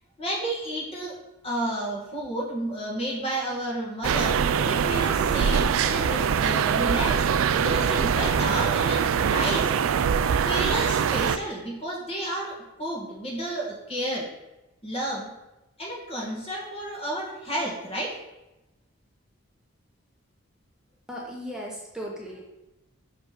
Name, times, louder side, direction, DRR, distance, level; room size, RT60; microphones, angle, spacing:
voice 1, 0.2-1.2 1.4-7.2 7.5-9.7 10.5-14.3 14.8-15.3 15.8-18.2, right 1 dB, 30° left, -3 dB, 1.8 m, -31 dB
sound 1, 4.0-11.4, right 7 dB, 80° right, 0.3 m, -23 dB
voice 2, 21.1-22.4, equal, 5° right, -3 dB, 1.0 m, -36 dB
6.2 x 5.0 x 5.1 m, 0.98 s
head